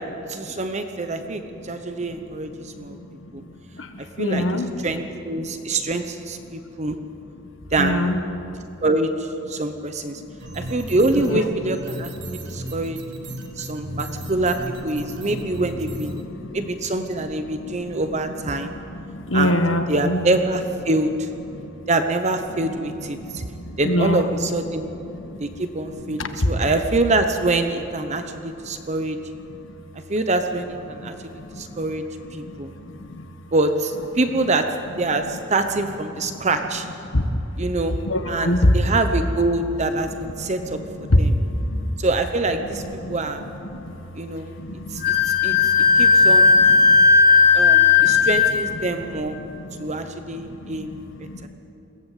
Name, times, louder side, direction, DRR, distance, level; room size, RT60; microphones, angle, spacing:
voice 1, 0.3-3.0 3.3-3.4 4.2-7.0 7.7-8.1 8.8-10.2 10.5-13.0 13.6-16.2 16.5-18.7 19.3-19.6 19.9-21.3 21.9-23.4 23.8-24.9 25.4-29.2 30.1-32.0 32.3-32.7 33.5-34.7 35.0-36.9 37.6-37.9 38.3-41.3 42.0-42.8 43.1-43.4 44.2-44.5 44.9-46.6 47.5-49.4 49.8-50.9 51.4-51.5, right 2 dB, 35° right, 7 dB, 0.9 m, -25 dB
voice 2, 3.7-4.7 7.8-8.2 10.2-10.6 11.2-11.4 12.3-12.6 13.3-13.5 14.2-14.3 15.0-15.5 16.2-16.7 17.6-18.0 18.6-20.3 21.5-21.7 23.2-24.3 25.1-25.4 26.1-26.5 31.0-31.8 32.4-33.2 36.3-36.5 37.1-37.3 38.0-38.7 40.6-40.7 41.0-41.8 42.6-42.7 43.0-43.2 43.7-43.9 44.6-47.1 48.0-48.3 49.5-49.9 50.6-51.5, left 1 dB, 85° left, 7 dB, 1.5 m, -26 dB
sound 1, 10.4-16.2, equal, 65° right, 1.9 m, -35 dB
Wind instrument woodwind instrument, 45.0-48.7, left 5 dB, 50° left, 2.6 m, -15 dB
21.5 x 17.0 x 8.4 m, 3.0 s
head